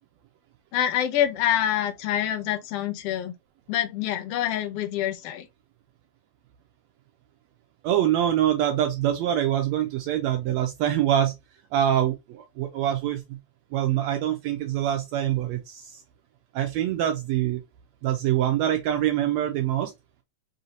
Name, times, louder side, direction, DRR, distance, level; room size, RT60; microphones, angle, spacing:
voice 1, 0.7-3.3 3.7-5.4, left 11 dB, 70° left, 1.5 m, -26 dB
voice 2, 7.8-11.3 11.7-13.4 13.7-16.0 16.6-17.6 18.0-19.9, right 11 dB, 75° right, 1.7 m, -24 dB
5.5 x 2.7 x 2.8 m
omnidirectional pair, 3.4 m